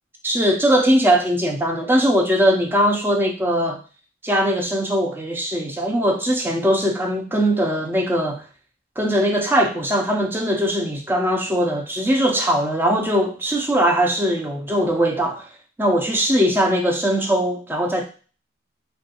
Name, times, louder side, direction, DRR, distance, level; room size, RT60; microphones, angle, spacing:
voice 1, 0.2-3.8 4.2-8.4 9.0-15.5 15.8-18.0, equal, 10° right, 1 dB, 0.4 m, -20 dB
3.3 x 2.2 x 2.8 m, 0.37 s
head